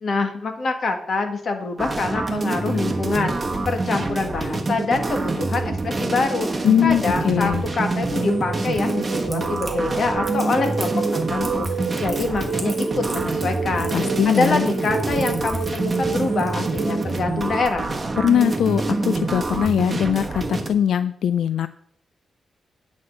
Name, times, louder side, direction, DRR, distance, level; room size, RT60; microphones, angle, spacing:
voice 1, 0.0-11.0 11.3-13.9 14.2-17.9, left 3 dB, 45° left, 5 dB, 1.6 m, -25 dB
sound 1, 1.8-20.7, right 2 dB, 20° right, 1.3 m, -26 dB
voice 2, 6.6-7.6 13.9-14.7 18.2-21.7, left 9 dB, 80° left, 13 dB, 0.4 m, -21 dB
sound 2, 7.3-17.2, right 6 dB, 85° right, 0.9 m, -31 dB
Crackle, 8.7-17.2, right 1 dB, ahead, 2.0 m, -39 dB
9.7 x 5.2 x 7.9 m, 0.65 s
wide cardioid pair, 165°, 0 cm